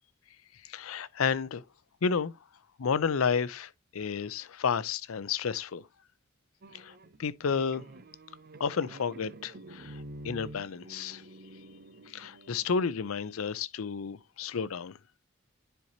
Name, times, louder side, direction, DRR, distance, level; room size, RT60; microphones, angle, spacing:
voice 1, 0.6-1.6 2.0-2.3 2.8-5.8 6.7-6.9 7.2-7.8 8.6-11.2 12.1-15.0, left 6 dB, 80° left, 0.5 m, -31 dB
sound 1, 6.6-12.7, right 1 dB, 50° right, 0.7 m, -48 dB
10.0 x 4.6 x 2.8 m
head